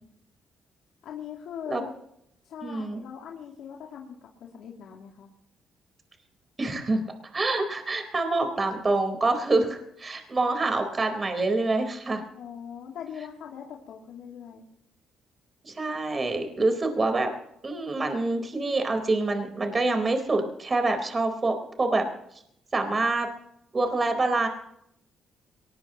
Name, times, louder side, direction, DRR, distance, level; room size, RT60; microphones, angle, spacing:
voice 1, 1.0-1.9 2.4-5.3 12.3-14.7, left 8 dB, 80° left, -2 dB, 2.6 m, -41 dB
voice 2, 2.6-3.0 6.6-7.0 7.3-12.2 15.6-17.3 17.6-22.0 22.7-23.3 23.7-24.5, right 2 dB, 30° right, 5 dB, 4.0 m, -26 dB
22.5 x 20.0 x 3.0 m, 0.73 s
cardioid pair, 90°, 0 cm